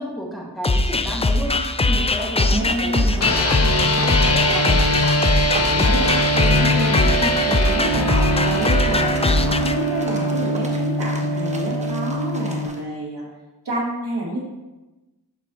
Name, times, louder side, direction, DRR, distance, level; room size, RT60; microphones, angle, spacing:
voice 1, 0.0-4.8 7.0-7.5 9.1-9.3, equal, ahead, -3 dB, 1.4 m, -31 dB
sound 1, 0.6-9.7, left 2 dB, 15° left, 0.4 m, -21 dB
sound 2, 2.0-12.8, right 1 dB, 15° right, 0.9 m, -37 dB
voice 2, 2.4-3.2 5.6-7.1 7.5-9.1 9.4-13.2 13.6-14.4, right 1 dB, 70° right, -5 dB, 2.1 m, -28 dB
sound 3, 3.2-12.7, left 1 dB, 35° left, 0.9 m, -22 dB
11.5 x 4.3 x 2.7 m, 1.1 s
wide cardioid pair, 60°, 41 cm